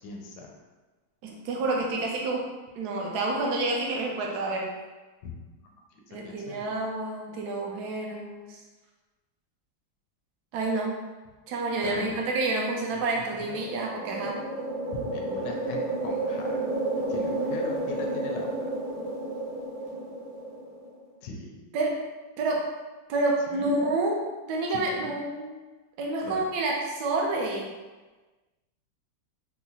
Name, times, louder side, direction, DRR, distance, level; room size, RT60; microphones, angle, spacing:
voice 1, 0.0-0.5 5.2-5.3 6.1-6.7 11.8-12.2 12.9-13.0 13.3-13.6 15.0-16.6 17.1-18.6 21.2-21.7 23.5-23.9 24.7-25.1 26.2-26.5, left 3 dB, 75° left, 0 dB, 1.2 m, -40 dB
voice 2, 1.2-2.4 2.8-4.7 6.1-8.4 10.5-11.0 11.5-14.4 21.7-22.0 22.4-22.7 23.1-25.6 26.0-27.7, right 2 dB, 70° right, -1 dB, 1.1 m, -29 dB
sound 1, 13.3-20.9, right 2 dB, 45° right, 0.9 m, -31 dB
4.6 x 2.0 x 2.7 m, 1.2 s
omnidirectional pair, 1.9 m